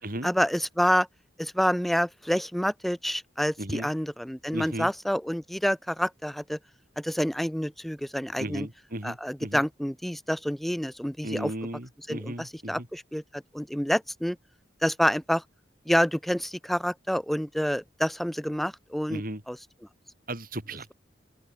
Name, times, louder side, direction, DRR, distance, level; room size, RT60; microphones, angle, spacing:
voice 1, 0.2-1.1 1.4-6.6 7.0-8.7 9.0-11.5 12.1-14.4 14.8-15.4 15.9-19.2 19.5-19.6, equal, ahead, 0.3 m, -28 dB
voice 2, 3.6-3.9 4.5-4.9 8.4-9.6 11.2-12.9 19.1-19.4 20.3-20.9, right 1 dB, 55° right, 4.9 m, -36 dB
open air
head